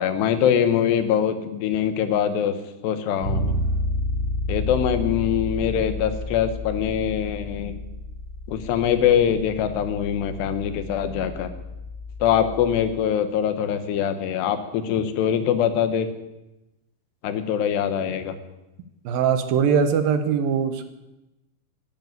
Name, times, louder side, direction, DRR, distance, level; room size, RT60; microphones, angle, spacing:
voice 1, 0.0-2.5 2.8-3.5 4.5-7.7 8.5-11.5 12.2-16.1 17.2-18.3, left 9 dB, 90° left, 10 dB, 3.4 m, -23 dB
Bass guitar, 3.2-13.1, left 1 dB, 15° left, 3.2 m, -31 dB
voice 2, 19.0-20.8, right 7 dB, 70° right, 9 dB, 2.6 m, -21 dB
12.5 x 12.0 x 9.5 m, 0.97 s
omnidirectional pair, 4.7 m